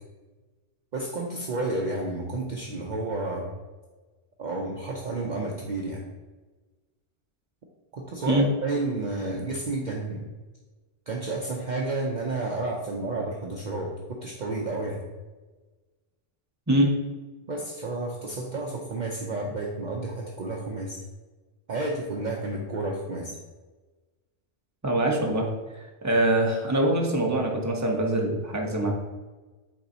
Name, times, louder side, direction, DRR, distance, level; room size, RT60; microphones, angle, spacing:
voice 1, 0.9-3.5 4.4-6.0 7.9-10.3 11.1-15.0 17.5-21.0 21.7-23.4, right 2 dB, 50° right, -1 dB, 0.7 m, -31 dB
voice 2, 24.8-25.5 26.0-28.9, right 1 dB, 15° right, 0 dB, 0.9 m, -23 dB
8.5 x 3.9 x 2.8 m, 1.3 s
omnidirectional pair, 1.1 m